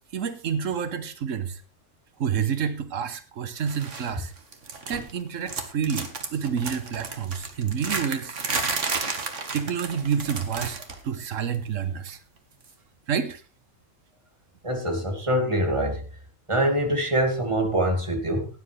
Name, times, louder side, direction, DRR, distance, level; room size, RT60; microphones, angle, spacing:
voice 1, 0.1-1.6 2.2-4.3 4.9-8.4 9.1-12.2 13.1-13.4, right 7 dB, 90° right, 11 dB, 1.4 m, -29 dB
sound 1, 3.7-4.1 4.4-5.2 5.4-11.0 11.3-11.5 12.6-12.7, right 4 dB, 70° right, 2.0 m, -32 dB
voice 2, 14.6-16.0 16.5-18.6, right 1 dB, 25° right, 3 dB, 2.5 m, -24 dB
18.0 x 10.0 x 3.3 m, 0.33 s
omnidirectional pair, 1.3 m